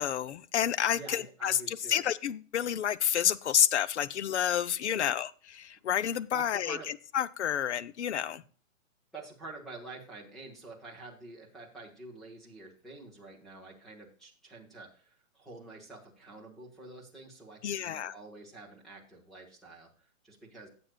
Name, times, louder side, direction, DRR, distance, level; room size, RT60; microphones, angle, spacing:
voice 1, 0.0-6.8 7.1-8.4 17.6-18.1, left 9 dB, 55° left, 16 dB, 0.6 m, -29 dB
voice 2, 0.9-2.0 4.8-5.1 6.1-6.9 9.1-20.7, right 2 dB, ahead, -2 dB, 0.9 m, -48 dB
15.0 x 7.8 x 2.2 m, 0.41 s
hypercardioid pair, 165°, 41 cm